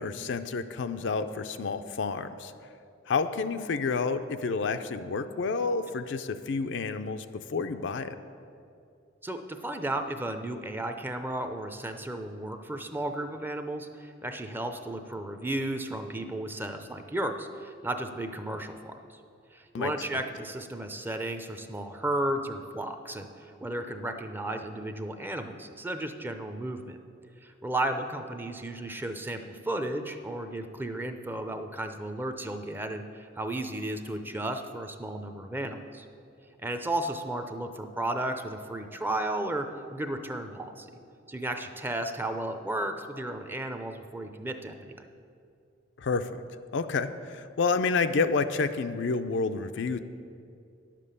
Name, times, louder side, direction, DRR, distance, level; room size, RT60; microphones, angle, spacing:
voice 1, 0.0-2.5 3.1-8.1 19.7-19.9 46.0-46.3 46.7-50.0, left 4 dB, 70° left, 9 dB, 0.5 m, -29 dB
voice 2, 9.2-18.9 19.5-27.0 27.4-36.1 36.6-40.9 41.3-44.9, right 1 dB, 10° right, 7 dB, 0.5 m, -34 dB
10.5 x 7.5 x 6.7 m, 2.5 s
head